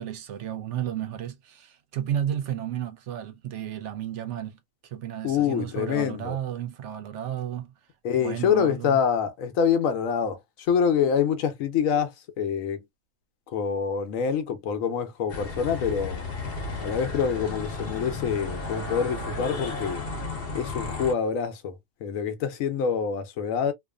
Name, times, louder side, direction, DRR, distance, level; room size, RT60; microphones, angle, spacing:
voice 1, 0.0-7.7 8.2-9.0, right 10 dB, 70° right, 0.8 m, -33 dB
voice 2, 5.2-6.4 8.0-12.8 13.5-16.2 16.8-20.0 20.5-21.8 22.0-23.7, left 7 dB, 80° left, 1.0 m, -26 dB
sound 1, 15.3-21.1, left 3 dB, 50° left, 0.8 m, -33 dB
2.5 x 2.3 x 2.2 m
omnidirectional pair, 1.4 m